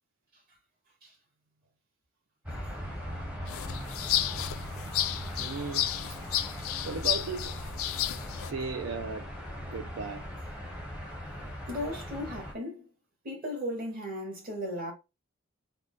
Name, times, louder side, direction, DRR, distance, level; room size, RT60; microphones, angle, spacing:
sound 1, 2.5-12.5, equal, 5° right, 0.7 m, -39 dB
sound 2, 3.5-8.5, left 12 dB, 80° left, 0.3 m, -32 dB
voice 1, 5.4-5.9 6.5-7.6 8.0-8.1 8.4-9.3 9.6-10.3, right 4 dB, 65° right, 0.4 m, -36 dB
voice 2, 11.7-12.9 13.2-14.9, left 1 dB, 40° right, 1.6 m, -36 dB
3.8 x 2.1 x 3.7 m
head